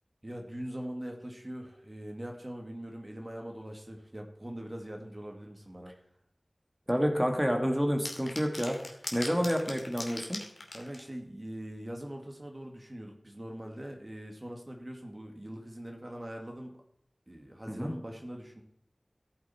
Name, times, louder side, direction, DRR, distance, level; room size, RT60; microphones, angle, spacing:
voice 1, 0.2-5.9 10.7-16.8 17.3-18.6, right 1 dB, 40° right, 2 dB, 2.2 m, -42 dB
voice 2, 6.9-10.4 17.7-17.9, equal, 10° right, 2 dB, 2.2 m, -29 dB
sound 1, 8.0-11.1, left 2 dB, 85° left, 2.3 m, -40 dB
15.0 x 9.3 x 4.4 m, 0.75 s
wide cardioid pair, 45°, 0 cm